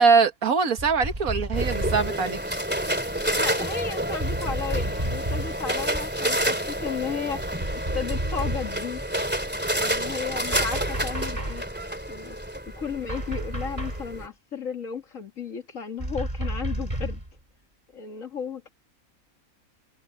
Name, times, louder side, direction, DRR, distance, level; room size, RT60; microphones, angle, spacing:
voice 1, 0.0-2.6, right 5 dB, 75° right, 2.0 m, -22 dB
sound 1, 0.8-2.3 4.2-5.7 7.4-8.9 10.5-11.7 13.1-14.1 16.0-17.3, right 1 dB, 25° right, 4.4 m, -31 dB
sound 2, 1.5-14.3, right 1 dB, 5° right, 2.7 m, -29 dB
voice 2, 3.3-7.4 7.9-9.0 9.4-11.6 12.1-12.4 12.7-17.2 17.9-18.7, left 6 dB, 60° left, 2.3 m, -34 dB
omnidirectional pair, 1.5 m